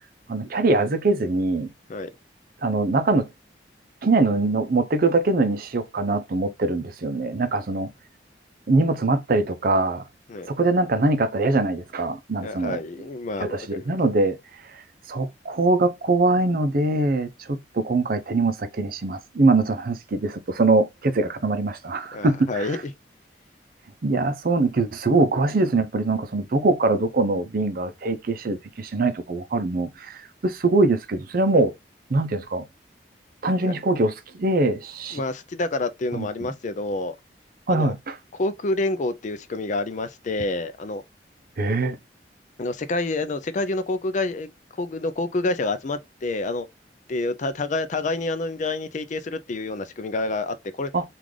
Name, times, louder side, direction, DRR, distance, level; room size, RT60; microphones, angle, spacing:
voice 1, 0.3-1.7 2.6-3.3 4.0-7.9 8.7-10.0 10.5-12.8 13.4-14.4 14.7-14.8 15.1-22.8 24.0-31.7 32.1-32.6 33.4-35.2 36.1-36.5 37.7-38.2 41.6-42.0 50.9-51.0, right 2 dB, 55° right, 0.6 m, -23 dB
voice 2, 12.4-13.8 22.1-22.8 35.1-37.1 37.7-37.9 38.3-41.0 42.6-44.5 44.8-46.7 47.1-50.9, left 2 dB, 45° left, 0.4 m, -28 dB
3.7 x 2.5 x 3.2 m
head